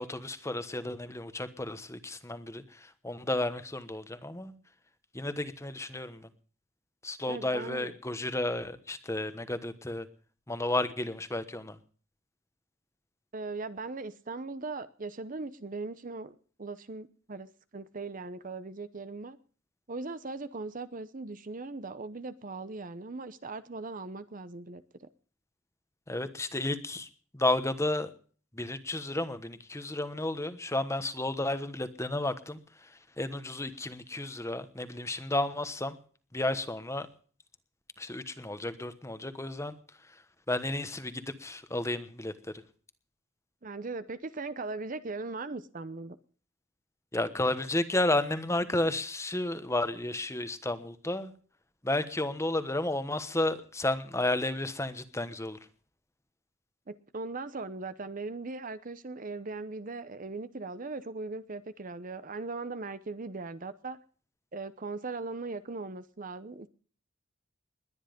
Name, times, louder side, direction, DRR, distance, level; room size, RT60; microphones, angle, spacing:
voice 1, 0.0-4.5 5.1-6.3 7.0-10.1 10.5-11.8 26.1-27.1 27.3-28.1 28.5-32.9 33.2-36.0 36.3-37.1 38.0-39.7 40.5-42.3 47.1-51.3 51.8-55.6, left 2 dB, 15° left, 1.1 m, -32 dB
voice 2, 7.3-7.9 13.3-17.5 17.7-19.4 19.9-25.1 43.6-46.2 56.9-64.0 64.5-66.7, right 3 dB, 40° right, 0.8 m, -39 dB
21.0 x 10.0 x 5.2 m
head